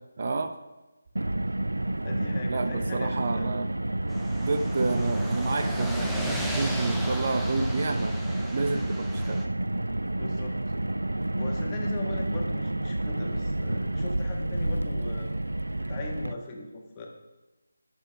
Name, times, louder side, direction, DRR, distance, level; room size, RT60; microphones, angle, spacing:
voice 1, 0.2-0.6 2.5-3.7 4.4-8.1 8.4-9.4, right 3 dB, 45° right, 7 dB, 0.7 m, -30 dB
Car, 1.2-16.3, right 1 dB, 85° right, 0.3 m, -29 dB
voice 2, 2.0-3.6 10.1-10.6 11.3-15.3 15.8-17.1, left 3 dB, 20° left, -1 dB, 1.6 m, -39 dB
sound 1, 4.1-9.4, equal, ahead, 0.6 m, -37 dB
18.0 x 6.9 x 3.4 m, 1.1 s
figure-of-eight pair, 160°, 0 cm